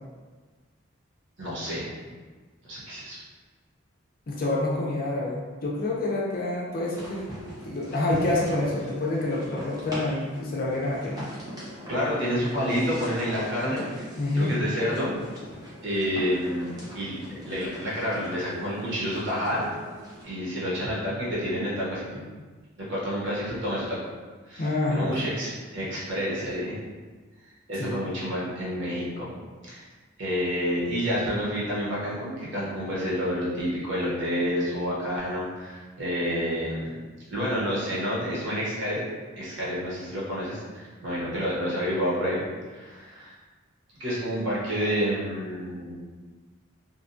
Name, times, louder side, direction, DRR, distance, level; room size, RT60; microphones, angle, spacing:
voice 1, 1.4-1.9 2.6-3.2 11.9-13.9 14.3-15.3 15.8-16.7 16.9-19.7 20.2-22.2 22.9-24.0 24.5-26.8 27.7-29.3 29.6-29.9 30.2-36.9 37.3-39.0 39.3-42.5 42.7-43.3 44.0-46.0, equal, 60° right, -7 dB, 0.8 m, -29 dB
voice 2, 4.3-7.2 7.6-11.1 14.2-14.5 24.6-25.1 27.8-27.9, left 2 dB, 45° left, -3 dB, 0.4 m, -27 dB
sound 1, 6.9-20.2, equal, 15° right, 0.6 m, -41 dB
2.7 x 2.2 x 2.5 m, 1.4 s
head